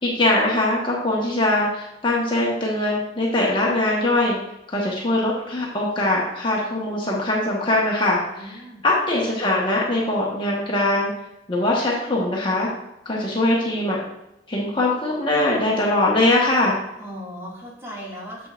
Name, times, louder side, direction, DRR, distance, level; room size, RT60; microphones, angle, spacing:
voice 1, 0.0-4.4 4.7-11.1 11.5-12.7 13.0-14.0 14.5-16.8, left 1 dB, 30° left, -4 dB, 1.2 m, -22 dB
voice 2, 8.4-8.8 17.0-18.5, equal, 15° right, -5 dB, 2.1 m, -37 dB
7.5 x 7.4 x 2.5 m, 0.89 s
head